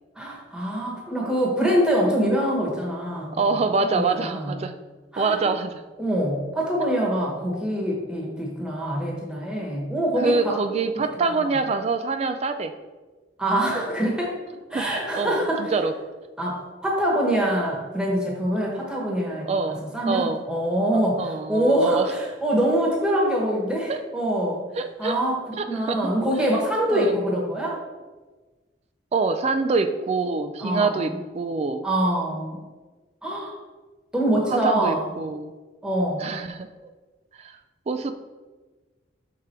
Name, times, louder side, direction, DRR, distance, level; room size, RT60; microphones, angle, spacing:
voice 1, 0.2-4.6 5.1-5.5 6.0-10.6 10.9-11.0 11.3-11.5 13.4-14.4 14.7-15.7 16.4-19.5 19.9-24.6 25.0-27.8 30.6-31.1 31.8-32.6 33.2-33.6 34.1-35.1 35.8-36.4, right 1 dB, 5° right, -3 dB, 1.2 m, -24 dB
voice 2, 3.4-4.7 5.2-5.8 10.2-12.7 14.7-14.8 15.1-15.9 19.5-20.4 21.2-22.1 23.9-24.0 24.8-25.2 25.6-26.1 26.9-27.2 29.1-31.9 34.5-35.5 36.2-36.7 37.4-37.6 37.9-38.1, right 4 dB, 35° right, 8 dB, 0.3 m, -25 dB
6.6 x 3.6 x 4.4 m, 1.3 s
head